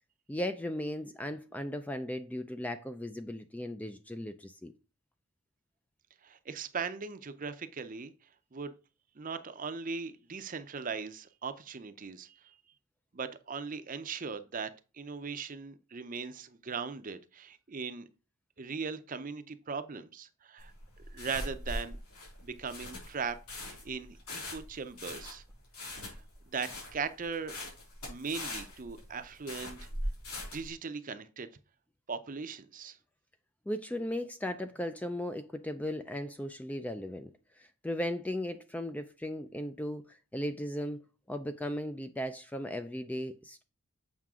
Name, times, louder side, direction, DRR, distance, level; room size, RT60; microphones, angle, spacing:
voice 1, 0.3-4.7 33.7-37.3 37.6-41.0 41.3-43.6, left 1 dB, 5° left, 0.3 m, -37 dB
voice 2, 6.2-8.1 8.5-8.7 9.2-12.3 13.1-18.1 18.6-20.7 21.1-22.0 22.4-25.4 26.0-26.2 26.5-27.6 28.1-29.9 30.3-31.5 32.1-33.0, right 5 dB, 35° right, 0.6 m, -39 dB
sound 1, 20.6-30.7, left 1 dB, 75° left, 4.4 m, -41 dB
7.4 x 5.7 x 3.6 m
head